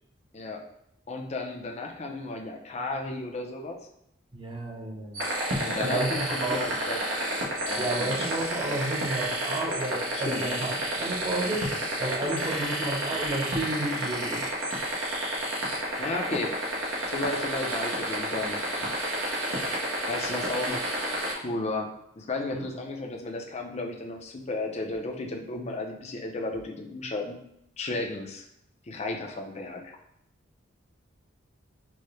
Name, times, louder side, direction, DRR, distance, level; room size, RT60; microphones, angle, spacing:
voice 1, 1.1-3.8 5.6-7.0 7.7-8.3 10.1-10.4 16.0-16.6 17.1-18.9 20.1-20.9 21.4-27.4 27.8-28.4 28.9-29.8, left 2 dB, 35° left, 2 dB, 0.5 m, -34 dB
voice 2, 4.3-5.2 5.8-6.6 7.8-11.7 12.0-14.5 22.5-22.7, right 2 dB, 25° right, 0 dB, 0.6 m, -31 dB
sound 1, 5.1-21.3, right 1 dB, 80° right, 0.9 m, -30 dB
4.6 x 2.1 x 3.1 m, 0.74 s
head